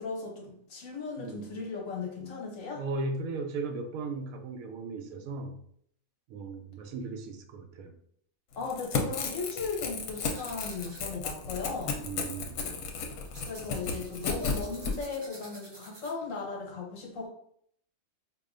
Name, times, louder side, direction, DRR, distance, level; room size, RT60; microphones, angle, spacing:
voice 1, 0.0-2.8 8.6-12.0 13.5-17.3, left 4 dB, 70° left, -1 dB, 1.3 m, -37 dB
voice 2, 1.2-1.5 2.8-5.6 6.3-7.9 12.0-12.6, right 3 dB, 90° right, 5 dB, 1.0 m, -37 dB
Crackle / Tearing, 8.6-14.9, left 5 dB, 85° left, 1.1 m, -34 dB
sound 1, 10.1-16.4, right 1 dB, 30° right, 0.5 m, -52 dB
4.8 x 2.3 x 2.5 m, 0.67 s
omnidirectional pair, 1.4 m